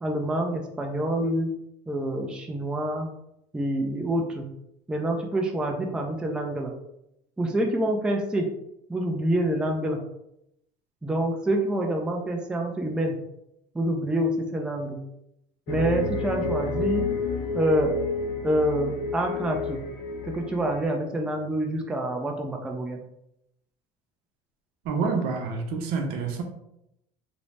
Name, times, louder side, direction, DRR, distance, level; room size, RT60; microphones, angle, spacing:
voice 1, 0.0-1.6 1.9-3.1 3.5-4.5 4.9-6.7 7.4-8.5 8.9-10.0 11.0-13.2 13.7-15.0 15.7-17.1 17.5-18.0 18.4-19.8 20.2-23.0, right 1 dB, 5° right, 2 dB, 0.3 m, -27 dB
sound 1, 15.7-20.8, left 3 dB, 55° left, 0.5 m, -30 dB
voice 2, 24.8-26.4, right 4 dB, 65° right, 4 dB, 0.6 m, -27 dB
2.6 x 2.0 x 3.2 m, 0.81 s
cardioid pair, 120°, 17 cm